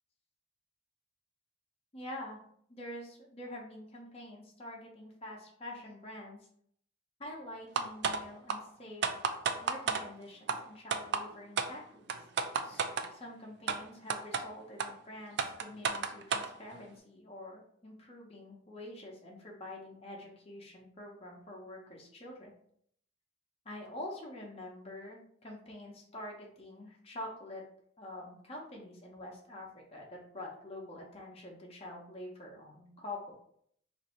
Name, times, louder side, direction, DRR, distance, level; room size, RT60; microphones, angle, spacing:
voice 1, 1.9-2.4 2.7-6.4 7.2-9.0 9.6-12.1 12.6-12.9 13.1-22.5 23.6-27.6 28.0-33.2, left 1 dB, 30° left, -2 dB, 0.6 m, -46 dB
sound 1, 7.8-8.2 8.5-8.6 9.0-10.0 10.5-10.6 10.9-11.2 11.6-11.7 12.1-13.1 13.7-13.8 14.1-14.4 14.8-14.9 15.4-16.5, right 6 dB, 55° right, 0.3 m, -31 dB
2.6 x 2.5 x 4.2 m, 0.66 s
head